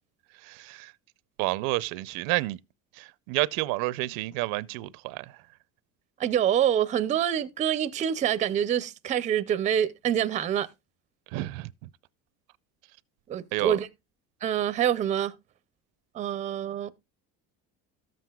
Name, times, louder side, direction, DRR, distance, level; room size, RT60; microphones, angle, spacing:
voice 1, 0.4-0.9 1.4-2.6 2.9-5.4 11.3-11.9 13.5-13.8, right 20 dB, 80° right, 0.6 m, -30 dB
voice 2, 6.2-10.7 13.3-13.9 14.4-15.3 16.1-16.9, right 9 dB, 20° right, 0.5 m, -26 dB
13.5 x 7.6 x 2.3 m
cardioid pair, 175°, 32 cm